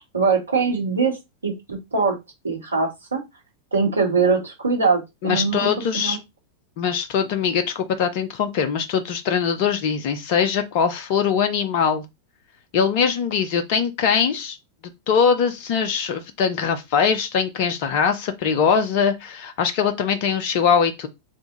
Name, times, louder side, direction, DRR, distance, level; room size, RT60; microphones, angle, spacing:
voice 1, 0.1-1.2 1.4-2.2 2.4-3.2 3.7-6.2, right 4 dB, 75° right, 1.6 m, -22 dB
voice 2, 5.2-6.2 6.8-12.0 12.7-14.6 15.1-21.1, left 6 dB, 45° left, 0.7 m, -22 dB
3.7 x 3.5 x 3.9 m
figure-of-eight pair, 90°, 0 cm